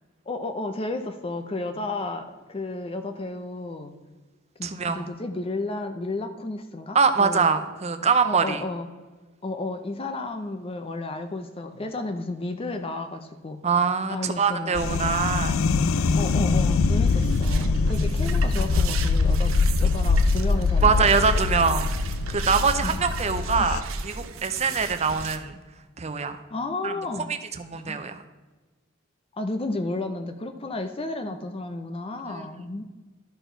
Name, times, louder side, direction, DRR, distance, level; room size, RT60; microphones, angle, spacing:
voice 1, 0.3-3.9 4.6-7.6 8.2-8.9 9.4-13.6 14.1-15.2 16.2-19.5 19.8-21.1 22.8-23.1 23.5-23.7 26.5-27.3 27.7-28.0 29.3-32.8, left 2 dB, 30° left, 7 dB, 0.5 m, -32 dB
voice 2, 4.6-5.1 6.9-8.6 13.6-15.6 20.8-21.9 22.3-25.6 26.0-26.4 26.8-26.9 27.6-28.2 32.3-32.5, right 5 dB, 35° right, 9 dB, 0.7 m, -23 dB
sound 1, 14.7-23.8, left 4 dB, 85° left, 0.4 m, -23 dB
sound 2, 17.1-25.4, right 5 dB, 80° right, 0.7 m, -36 dB
12.5 x 4.4 x 4.5 m, 1.3 s
head